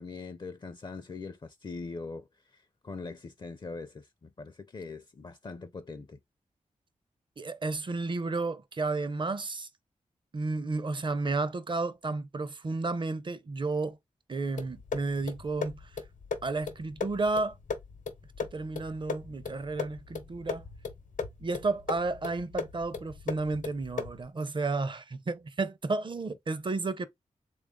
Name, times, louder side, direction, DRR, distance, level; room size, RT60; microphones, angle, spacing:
voice 1, 0.0-2.3 2.5-6.2, left 4 dB, 35° left, 0.4 m, -42 dB
voice 2, 7.4-9.7 10.3-14.0 14.3-16.0 16.4-17.6 18.5-20.7 21.4-27.1, right 3 dB, 40° right, 0.5 m, -32 dB
sound 1, 14.6-24.3, left 5 dB, 90° left, 0.8 m, -38 dB
3.4 x 2.4 x 3.6 m
cardioid pair, 65°, 13 cm